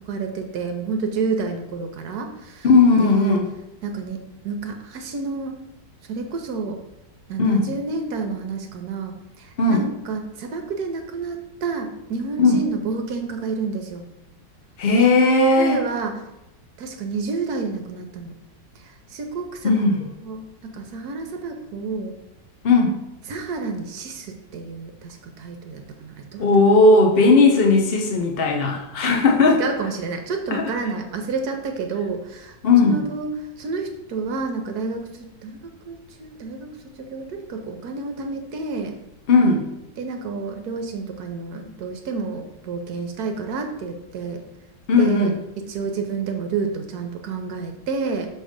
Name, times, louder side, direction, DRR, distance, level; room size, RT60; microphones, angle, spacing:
voice 1, 0.1-2.7 3.0-3.4 3.8-4.2 4.4-5.5 6.1-6.8 7.3-14.1 15.6-16.2 16.8-18.3 18.8-19.9 20.2-22.1 23.3-26.4 29.6-32.5 32.8-33.3 33.6-35.1 35.4-39.0 40.0-44.4 45.0-48.3, right 4 dB, 70° right, 4 dB, 1.1 m, -29 dB
voice 2, 2.6-3.5 7.4-7.7 9.6-9.9 12.4-12.6 14.8-15.8 19.6-20.0 22.6-23.0 26.4-29.6 30.5-30.7 32.6-33.0 39.3-39.6 44.9-45.3, left 3 dB, 55° left, 1 dB, 0.6 m, -16 dB
6.3 x 3.2 x 5.0 m, 0.89 s
omnidirectional pair, 1.9 m